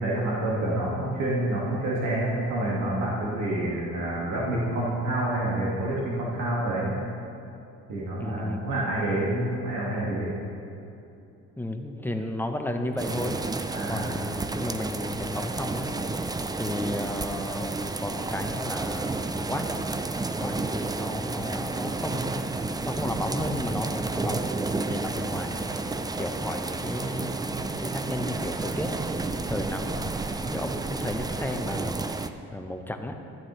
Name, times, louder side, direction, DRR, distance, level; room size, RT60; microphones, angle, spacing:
voice 1, 0.0-6.9 7.9-10.3 13.7-14.1, right 1 dB, 80° right, -6 dB, 1.8 m, -28 dB
voice 2, 8.2-8.7 11.6-13.4 13.9-16.2 16.6-19.7 20.4-22.5 22.9-24.5 24.8-25.6 26.2-29.0 29.5-30.1 30.4-32.0 32.5-33.2, left 1 dB, 5° left, 5 dB, 0.8 m, -33 dB
sound 1, 13.0-32.3, right 3 dB, 15° right, 0.4 m, -31 dB
13.5 x 8.8 x 3.1 m, 2.7 s
cardioid pair, 90°, 30 cm